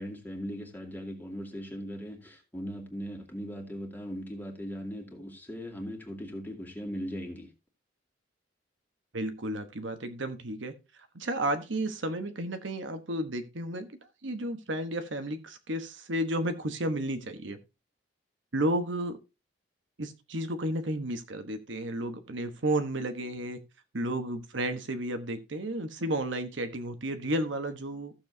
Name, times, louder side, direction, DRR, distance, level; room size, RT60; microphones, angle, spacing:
voice 1, 0.0-7.5, equal, 10° left, 2.3 m, -39 dB
voice 2, 9.1-10.7 11.1-13.9 14.2-17.6 18.5-19.2 20.0-23.6 23.9-28.1, right 1 dB, 75° right, 1.2 m, -32 dB
15.0 x 7.1 x 2.7 m
head